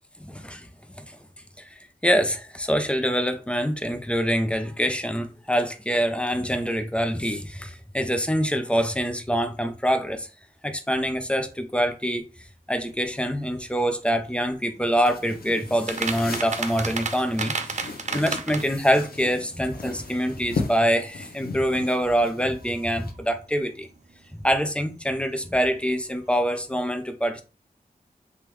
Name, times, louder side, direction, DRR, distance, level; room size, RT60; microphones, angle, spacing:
voice 1, 0.2-0.7 1.0-1.2 1.6-10.3 10.6-12.2 12.7-23.9 24.3-27.4, equal, 5° left, 0.6 m, -25 dB
sound 1, 12.9-26.7, right 5 dB, 50° right, 0.4 m, -37 dB
sound 2, 15.1-23.1, left 4 dB, 85° left, 0.6 m, -37 dB
3.4 x 3.2 x 3.2 m
wide cardioid pair, 90°, 15 cm